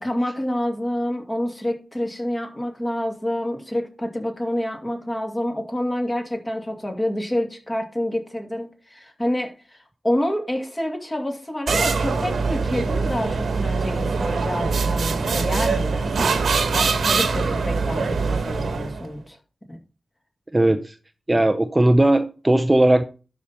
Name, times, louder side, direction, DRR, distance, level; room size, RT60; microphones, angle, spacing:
voice 1, 0.0-9.8 10.0-19.4 19.7-19.8, left 1 dB, 20° left, 2.5 m, -28 dB
sound 1, 11.7-19.1, right 4 dB, 85° right, 1.3 m, -23 dB
voice 2, 20.5-20.9 21.3-23.0, right 1 dB, 20° right, 0.7 m, -18 dB
12.0 x 4.4 x 5.5 m
wide cardioid pair, 90°, 0 cm